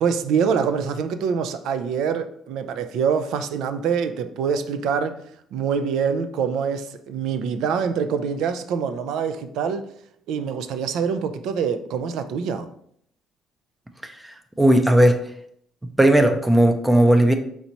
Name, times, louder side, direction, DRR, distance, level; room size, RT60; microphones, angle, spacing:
voice 1, 0.0-5.2 5.5-9.9 10.3-12.7, right 6 dB, 75° right, 10 dB, 0.4 m, -25 dB
voice 2, 14.0-15.2 15.8-17.3, right 1 dB, 10° right, 7 dB, 0.5 m, -17 dB
4.4 x 4.0 x 2.9 m, 0.69 s
cardioid pair, 115°, 0 cm